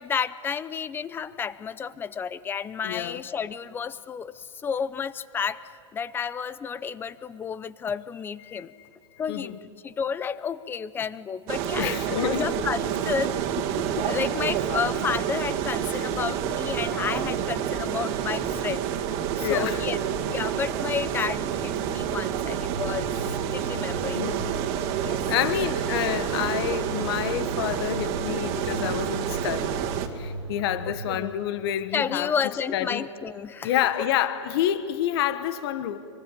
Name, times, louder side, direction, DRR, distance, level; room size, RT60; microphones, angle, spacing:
voice 1, 0.0-5.6 5.9-8.7 9.2-9.6 9.8-13.4 14.0-18.8 19.4-20.0 20.2-23.1 23.5-24.3 25.0-25.2 31.1-31.4 31.9-34.1, left 6 dB, 15° left, 16 dB, 0.6 m, -31 dB
voice 2, 2.8-3.2 8.4-8.9 9.3-9.6 11.8-12.5 15.9-16.1 19.4-19.8 24.1-24.6 25.2-29.8 30.1-32.3 32.7-33.1 33.6-36.0, left 11 dB, 55° left, 11 dB, 1.2 m, -28 dB
sound 1, 11.5-30.1, right 9 dB, 40° right, 2.1 m, -28 dB
sound 2, 22.5-31.2, right 2 dB, 85° right, 3.0 m, -38 dB
25.0 x 24.0 x 9.1 m, 2.5 s
supercardioid pair, 150°, 16 cm